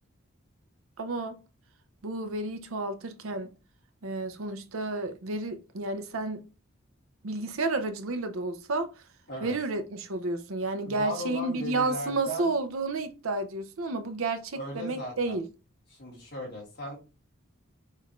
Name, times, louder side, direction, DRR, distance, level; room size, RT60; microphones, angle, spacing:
voice 1, 1.0-1.4 2.0-3.5 4.0-6.4 7.2-8.9 9.4-15.4, right 2 dB, 75° right, 0.6 m, -31 dB
voice 2, 10.8-12.5 14.5-15.4 15.9-17.0, equal, 50° left, 2.2 m, -37 dB
6.4 x 2.6 x 3.0 m
head